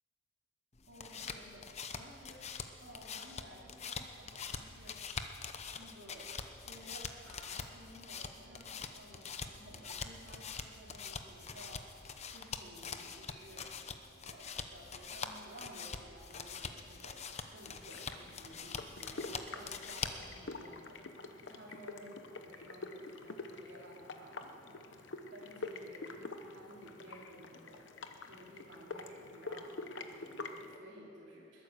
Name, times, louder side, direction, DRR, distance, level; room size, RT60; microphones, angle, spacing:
sound 1, 0.7-20.3, left 5 dB, 35° left, 0.8 m, -44 dB
voice 1, 0.9-2.5 2.8-5.0 5.7-6.3 6.6-13.7 14.2-27.9 28.3-31.6, equal, 85° right, -6 dB, 2.8 m, -55 dB
sound 2, 17.8-30.8, left 3 dB, 80° left, 0.9 m, -47 dB
21.0 x 9.2 x 6.7 m, 2.8 s
head